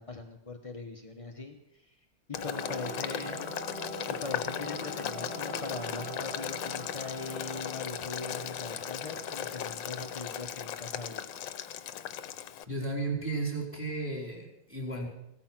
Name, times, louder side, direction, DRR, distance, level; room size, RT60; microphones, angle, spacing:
voice 1, 0.0-2.0 2.3-3.5 4.1-11.3, left 3 dB, 40° left, 3 dB, 0.5 m, -41 dB
Boiling, 2.3-12.6, left 10 dB, 65° left, 1.4 m, -37 dB
sound 1, 2.3-10.3, equal, 90° right, 6.1 m, -43 dB
voice 2, 12.7-15.1, right 2 dB, 5° right, 0 dB, 4.4 m, -34 dB
16.5 x 13.5 x 5.9 m, 0.81 s
omnidirectional pair, 2.3 m